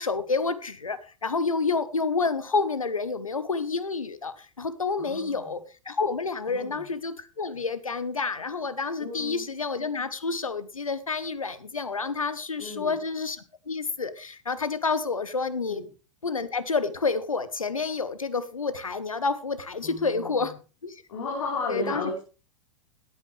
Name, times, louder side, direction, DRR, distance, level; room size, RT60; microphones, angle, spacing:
voice 1, 0.0-15.8 16.2-20.5 20.8-20.9 21.7-22.0, left 4 dB, 85° left, 14 dB, 1.2 m, -29 dB
voice 2, 5.0-5.6 6.5-6.9 9.0-9.5 12.6-13.0 15.7-15.9 19.8-20.6 21.1-22.2, left 3 dB, 65° left, -1 dB, 4.2 m, -34 dB
18.5 x 8.8 x 3.4 m, 0.34 s
figure-of-eight pair, 95°, 17 cm